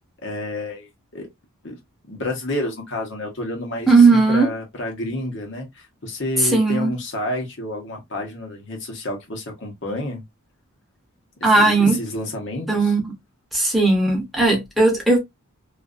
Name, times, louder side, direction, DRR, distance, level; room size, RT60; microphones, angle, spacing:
voice 1, 0.2-1.3 1.6-1.8 2.1-10.2 11.4-13.0, left 1 dB, 55° left, 1.0 m, -30 dB
voice 2, 3.9-4.5 6.4-6.9 11.4-12.0 12.7-13.0 13.5-15.2, right 3 dB, ahead, 0.8 m, -16 dB
2.6 x 2.5 x 2.4 m
head